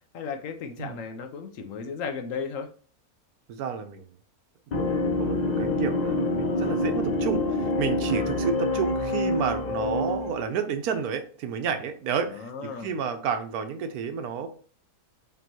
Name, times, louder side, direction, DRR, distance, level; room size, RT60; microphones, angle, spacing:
voice 1, 0.1-2.7 8.7-8.8 12.3-12.9, left 5 dB, 70° left, 6 dB, 0.9 m, -35 dB
voice 2, 3.5-4.2 4.8-4.9 5.2-14.5, right 6 dB, 85° right, 8 dB, 1.1 m, -31 dB
sound 1, 4.7-10.4, left 2 dB, 90° left, 0.3 m, -26 dB
5.3 x 3.0 x 2.9 m, 0.41 s
omnidirectional pair, 1.6 m